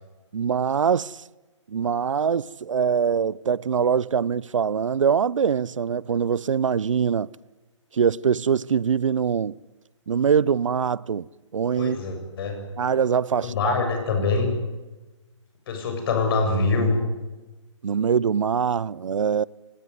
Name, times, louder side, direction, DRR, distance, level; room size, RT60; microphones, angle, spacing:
voice 1, 0.3-1.2 1.7-7.3 7.9-9.6 10.1-11.3 11.5-12.0 12.8-13.7 17.8-19.4, right 7 dB, 75° right, 0.7 m, -23 dB
voice 2, 11.8-12.6 13.4-14.6 15.7-17.0, left 3 dB, 45° left, 7.4 m, -24 dB
24.5 x 19.0 x 9.5 m
hypercardioid pair, 145°, 16 cm